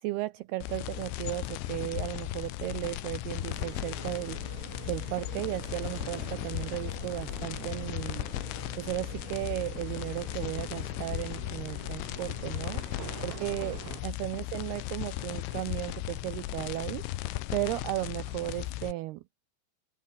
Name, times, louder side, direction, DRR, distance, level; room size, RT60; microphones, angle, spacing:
voice 1, 0.0-4.4 4.9-8.3 8.8-12.8 13.2-17.1 17.5-19.2, right 18 dB, 90° right, 2.2 m, -35 dB
sound 1, 0.6-18.9, left 16 dB, 80° left, 3.5 m, -36 dB
sound 2, 3.4-14.0, right 17 dB, 75° right, 2.9 m, -46 dB
omnidirectional pair, 5.4 m